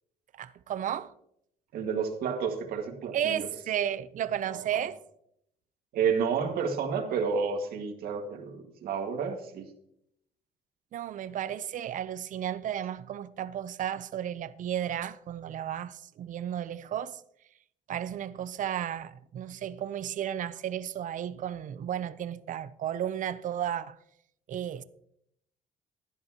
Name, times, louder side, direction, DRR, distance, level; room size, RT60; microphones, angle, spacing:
voice 1, 0.3-1.1 3.1-5.0 10.9-17.2 17.9-24.0 24.5-24.8, right 10 dB, 55° right, 0.7 m, -33 dB
voice 2, 1.7-3.5 4.5-4.9 5.9-9.7, right 6 dB, 80° right, 2.0 m, -30 dB
15.5 x 11.0 x 2.9 m
cardioid pair, 115°, 16 cm